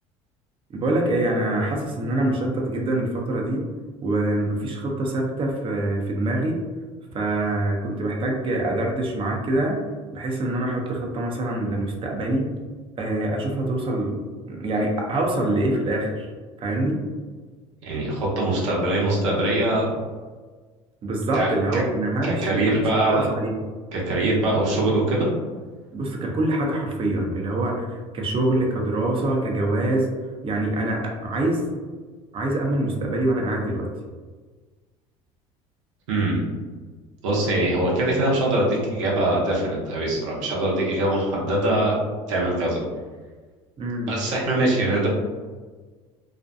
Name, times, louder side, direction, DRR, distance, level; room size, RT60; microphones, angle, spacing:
voice 1, 0.7-3.6 4.0-6.6 7.1-9.8 10.1-12.5 13.0-14.2 14.5-16.3 16.6-17.0 21.0-23.6 25.9-30.1 30.4-31.6 32.3-33.9 43.8-44.1, right 1 dB, 35° right, 0 dB, 0.6 m, -25 dB
voice 2, 17.8-19.9 21.3-21.8 22.2-23.3 23.9-25.3 36.1-36.5 37.2-42.0 42.3-42.8 44.1-45.1, right 1 dB, 85° right, -3 dB, 0.7 m, -22 dB
2.5 x 2.2 x 2.5 m, 1.4 s
hypercardioid pair, 75°, 16 cm